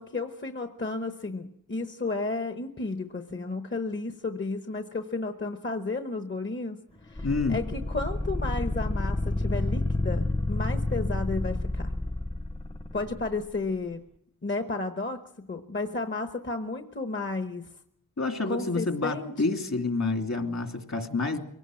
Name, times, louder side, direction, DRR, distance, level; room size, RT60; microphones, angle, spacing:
voice 1, 0.0-6.8 7.0-11.9 12.9-14.0 14.4-17.7 18.5-19.7, left 3 dB, 35° left, 7 dB, 1.1 m, -33 dB
voice 2, 7.2-7.6 18.2-21.4, left 3 dB, 55° left, 6 dB, 2.6 m, -28 dB
sound 1, 7.2-13.3, left 1 dB, 15° left, 0.9 m, -29 dB
23.5 x 17.5 x 7.7 m, 0.75 s
wide cardioid pair, 105°, 33 cm